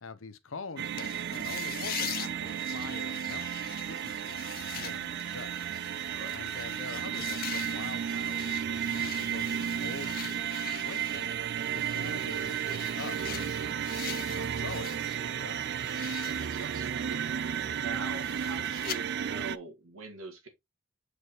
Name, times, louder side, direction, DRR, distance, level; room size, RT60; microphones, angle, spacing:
voice 1, 0.0-5.9 6.3-11.3 11.7-15.6, left 4 dB, 75° left, 0.8 m, -45 dB
sound 1, 0.8-19.6, right 8 dB, 55° right, 0.4 m, -33 dB
sound 2, 1.0-15.2 15.5-19.0, left 12 dB, 45° left, 0.5 m, -43 dB
voice 2, 6.1-6.4 16.2-16.9 17.8-20.5, right 3 dB, 80° right, 1.9 m, -43 dB
6.6 x 4.9 x 3.0 m
head